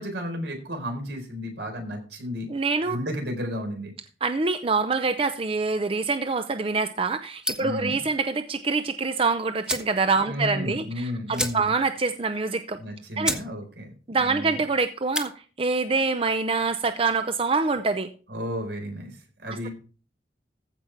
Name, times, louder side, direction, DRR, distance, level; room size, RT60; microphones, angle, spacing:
voice 1, 0.0-2.5 2.9-3.9 7.6-8.0 10.2-11.7 12.8-13.9 14.2-14.6 18.3-19.7, equal, 75° right, 3 dB, 4.2 m, -33 dB
voice 2, 2.5-3.0 4.2-12.8 13.2-13.3 14.1-15.3 15.6-18.1 19.5-19.7, right 4 dB, 30° right, 9 dB, 0.6 m, -25 dB
sound 1, 7.4-7.8 9.1-9.2 9.6-10.0 10.3-10.4 10.7-10.8 11.3-11.9 12.3-12.4 12.9-13.0 13.2-13.5 13.8-14.2 14.9-15.3, right 1 dB, 5° right, 1.2 m, -30 dB
15.0 x 5.7 x 4.5 m, 0.37 s
head